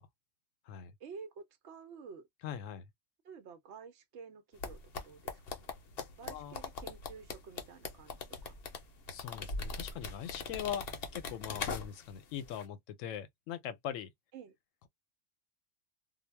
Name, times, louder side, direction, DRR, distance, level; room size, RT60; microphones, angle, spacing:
voice 1, 1.0-2.3 3.2-5.7 6.2-8.6 14.3-14.6, right 6 dB, 65° right, 0.9 m, -51 dB
voice 2, 2.4-2.9 6.3-6.6 9.1-10.8 11.1-14.1, left 9 dB, 90° left, 1.0 m, -41 dB
sound 1, 4.6-12.2 12.4-12.6, left 4 dB, 60° left, 0.8 m, -40 dB
2.3 x 2.0 x 3.2 m
omnidirectional pair, 1.3 m